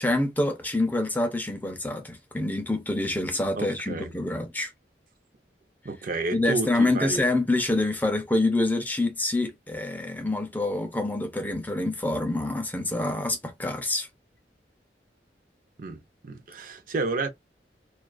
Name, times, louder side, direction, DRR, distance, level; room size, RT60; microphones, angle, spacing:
voice 1, 0.0-4.7 6.3-14.1, left 2 dB, 10° left, 0.4 m, -26 dB
voice 2, 3.6-4.1 5.8-7.3 15.8-17.3, right 3 dB, 50° right, 0.5 m, -31 dB
2.3 x 2.3 x 2.3 m
head